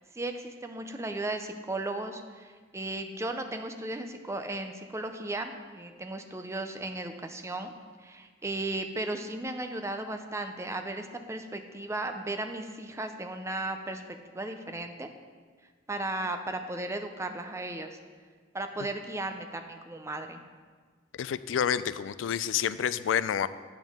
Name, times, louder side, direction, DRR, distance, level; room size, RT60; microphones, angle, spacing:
voice 1, 0.0-7.7 8.0-15.1 15.9-18.0 18.5-20.4, right 2 dB, 15° right, 6 dB, 0.5 m, -35 dB
voice 2, 21.1-23.5, left 8 dB, 80° left, 15 dB, 0.3 m, -28 dB
9.2 x 7.3 x 3.6 m, 1.5 s
head